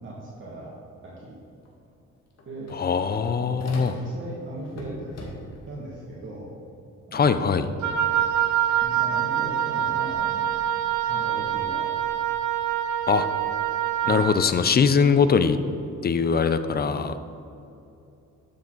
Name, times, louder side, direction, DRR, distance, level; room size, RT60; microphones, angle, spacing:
voice 1, 0.0-0.8 1.0-1.4 2.4-2.7 3.1-6.5 7.1-7.9 8.8-10.5 11.0-11.9 14.0-14.3, right 1 dB, 40° right, -6 dB, 2.2 m, -38 dB
sound 1, 1.6-1.7 2.0-4.3 4.6-5.7, left 2 dB, 55° left, 2.2 m, -43 dB
voice 2, 2.7-3.9 7.1-7.7 13.1-13.3 14.1-15.6 16.0-17.1, left 6 dB, 30° left, 11 dB, 0.6 m, -21 dB
Wind instrument woodwind instrument, 7.8-14.3, right 10 dB, 70° right, 0.9 m, -25 dB
12.5 x 7.0 x 4.0 m, 2.7 s
cardioid pair, 90°, 30 cm